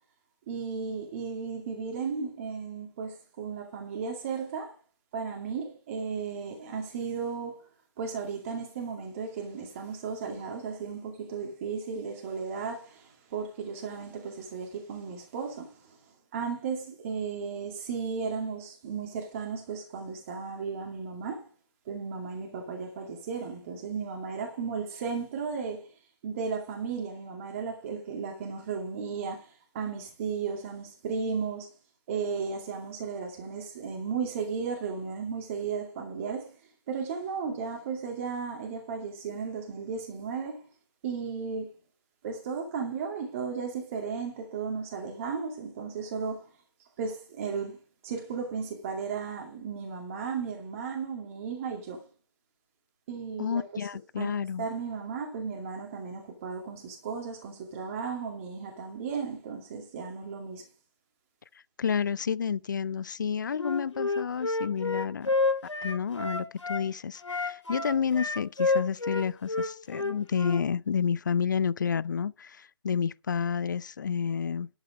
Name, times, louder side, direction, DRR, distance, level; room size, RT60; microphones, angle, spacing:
voice 1, 0.5-4.7 5.1-7.7 8.0-16.0 16.3-21.5 21.9-25.9 26.2-31.7 32.1-36.6 36.9-40.6 41.0-41.7 42.2-46.5 47.0-47.8 48.0-52.0 53.1-53.9 54.2-60.6, right 5 dB, 30° right, 2.3 m, -35 dB
voice 2, 53.4-54.7 61.8-65.3 65.8-74.7, left 7 dB, 40° left, 0.4 m, -30 dB
Wind instrument woodwind instrument, 63.6-66.8 67.2-70.6, left 3 dB, 85° left, 2.6 m, -29 dB
11.0 x 7.8 x 5.0 m
figure-of-eight pair, 155°, 15 cm